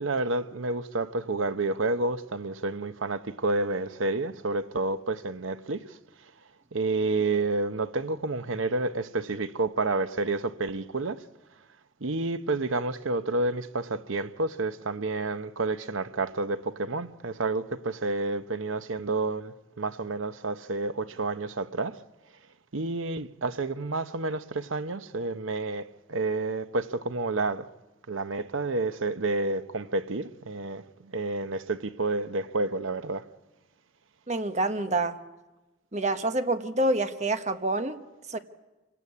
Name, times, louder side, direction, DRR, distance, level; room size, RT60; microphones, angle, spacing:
voice 1, 0.0-5.8 6.7-11.2 12.0-21.9 22.7-27.7 28.1-30.8 31.1-33.3, right 3 dB, 85° right, 0.9 m, -29 dB
voice 2, 34.3-35.2 35.9-38.0 38.3-38.4, right 2 dB, 35° right, 1.2 m, -27 dB
27.0 x 18.0 x 8.4 m
head